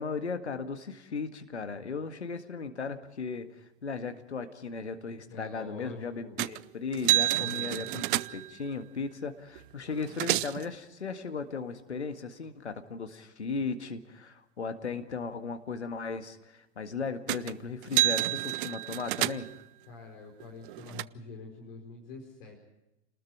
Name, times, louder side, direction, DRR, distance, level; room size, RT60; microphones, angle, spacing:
voice 1, 0.0-19.5, left 4 dB, 80° left, 8 dB, 1.8 m, -36 dB
voice 2, 5.3-6.3 7.3-7.9 19.9-22.6, left 3 dB, 55° left, 1 dB, 4.7 m, -45 dB
sound 1, 6.4-6.6 6.9-8.6 9.6-9.7 9.9-10.7 17.3-17.5 17.8-19.6 20.4-21.0, right 14 dB, 50° right, 0.7 m, -29 dB
29.5 x 20.0 x 4.7 m, 0.93 s
figure-of-eight pair, 90°, 34 cm